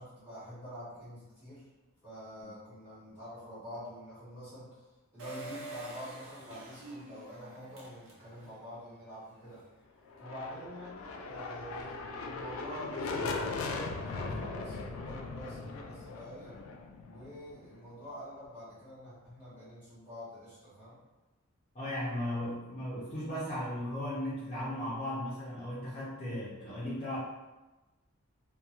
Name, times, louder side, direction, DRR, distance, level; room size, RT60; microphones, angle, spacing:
voice 1, 0.0-1.6 2.0-4.8 5.1-9.6 10.2-16.6 17.0-21.0, equal, 10° right, -12 dB, 1.2 m, -46 dB
Engine, 5.2-8.7 9.1-9.2 9.4-9.5, right 2 dB, 85° right, 0.7 m, -47 dB
sound 1, 10.1-17.9, left 3 dB, 80° left, 0.3 m, -39 dB
voice 2, 21.7-27.2, left 1 dB, 30° left, -9 dB, 0.6 m, -36 dB
2.8 x 2.2 x 2.4 m, 1.1 s
head